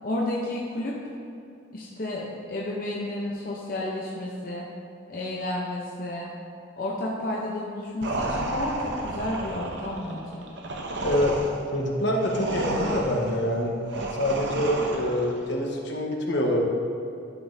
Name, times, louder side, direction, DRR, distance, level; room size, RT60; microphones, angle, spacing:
voice 1, 0.0-1.0 1.7-4.7 5.1-6.3 6.7-10.5, left 1 dB, 45° left, -4 dB, 0.7 m, -31 dB
sound 1, 8.0-15.4, right 2 dB, 65° right, 0.7 m, -32 dB
voice 2, 11.7-13.7 14.2-16.6, equal, 65° left, 0 dB, 1.1 m, -25 dB
11.0 x 6.0 x 2.7 m, 2.6 s
head